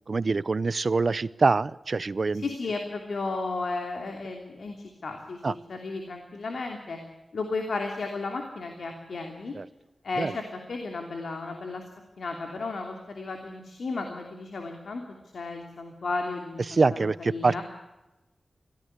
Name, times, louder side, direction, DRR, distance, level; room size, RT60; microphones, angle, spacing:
voice 1, 0.1-2.4 5.4-5.5 9.6-9.7 10.2-10.4 16.7-17.6, right 4 dB, 55° right, 19 dB, 0.7 m, -25 dB
voice 2, 2.4-5.4 5.7-7.0 7.3-9.5 10.0-10.4 10.7-11.8 12.2-15.0 15.3-17.6, left 3 dB, 80° left, 3 dB, 3.0 m, -34 dB
22.5 x 16.5 x 8.2 m, 1.0 s
wide cardioid pair, 75°, 0 cm